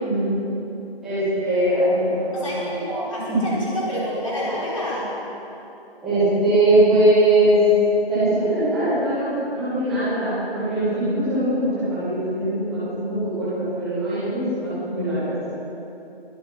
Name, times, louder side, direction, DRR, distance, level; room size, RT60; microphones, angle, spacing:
voice 1, 1.0-2.6 3.3-3.4 6.0-7.6 8.1-15.3, right 1 dB, ahead, -16 dB, 1.5 m, -21 dB
voice 2, 2.3-5.1, left 1 dB, 30° left, -7 dB, 4.4 m, -28 dB
21.0 x 9.5 x 5.8 m, 3.0 s
figure-of-eight pair, 165°, 31 cm